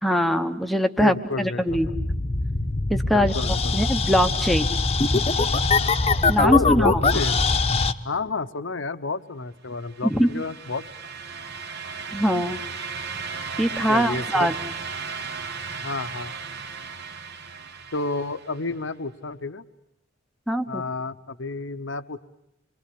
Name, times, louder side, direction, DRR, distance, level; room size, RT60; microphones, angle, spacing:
voice 1, 0.0-1.9 2.9-3.3 3.7-4.7 6.3-7.0 10.0-10.3 12.1-12.6 13.6-14.5 20.5-20.8, equal, ahead, 7 dB, 1.0 m, -22 dB
voice 2, 1.0-1.6 3.1-3.9 6.4-7.4 8.0-10.9 13.9-14.5 15.8-16.3 17.9-19.6 20.7-22.2, left 3 dB, 65° left, 12 dB, 1.0 m, -30 dB
sound 1, 1.7-7.9, left 3 dB, 30° left, 1.0 m, -22 dB
sound 2, 9.8-18.7, right 5 dB, 55° right, 1.7 m, -35 dB
26.5 x 23.0 x 8.4 m, 0.84 s
head